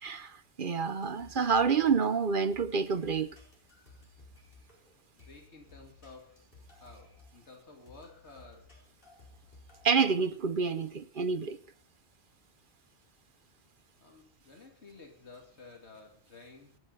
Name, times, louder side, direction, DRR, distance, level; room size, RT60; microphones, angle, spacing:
voice 1, 0.0-3.3 9.8-11.6, right 5 dB, 55° right, 1.0 m, -28 dB
sound 1, 0.8-9.9, left 2 dB, 55° left, 4.8 m, -57 dB
voice 2, 5.2-6.5 6.8-8.8 14.0-16.8, left 3 dB, 85° left, 2.7 m, -53 dB
25.0 x 10.5 x 4.0 m
omnidirectional pair, 1.1 m